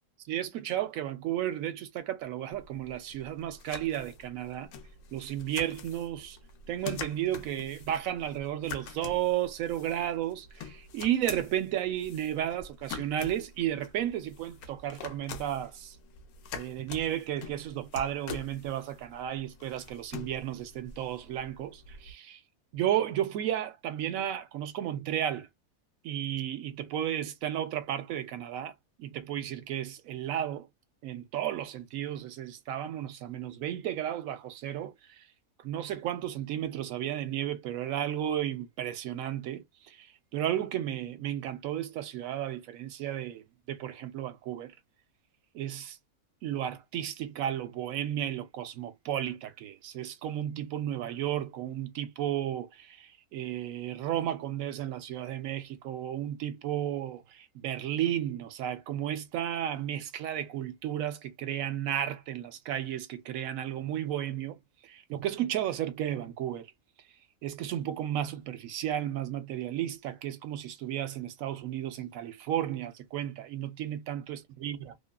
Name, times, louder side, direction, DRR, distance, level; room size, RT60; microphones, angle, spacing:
voice 1, 0.3-4.7 5.1-6.4 6.7-16.0 16.5-22.4 22.7-25.5 26.0-28.7 29.0-30.7 31.0-35.2 35.6-40.1 40.3-44.7 45.5-46.0 46.4-66.7 67.4-74.9, right 11 dB, 75° right, 1.0 m, -33 dB
sound 1, 2.5-22.1, left 5 dB, 85° left, 1.1 m, -46 dB
2.7 x 2.3 x 2.2 m
omnidirectional pair, 1.5 m